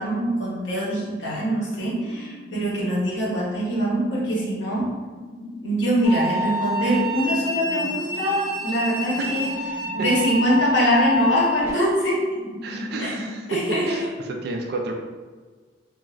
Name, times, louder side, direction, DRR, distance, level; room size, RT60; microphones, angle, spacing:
voice 1, 0.0-4.9 5.6-9.5 9.9-12.2 13.0-13.1 13.5-13.8, equal, 70° left, -5 dB, 1.0 m, -23 dB
sound 1, 1.9-13.4, left 1 dB, 85° right, 0.7 m, -40 dB
sound 2, 6.0-11.7, left 1 dB, 10° right, 0.8 m, -27 dB
voice 2, 12.6-14.9, right 2 dB, 55° right, 2 dB, 0.3 m, -30 dB
2.4 x 2.3 x 3.0 m, 1.5 s
head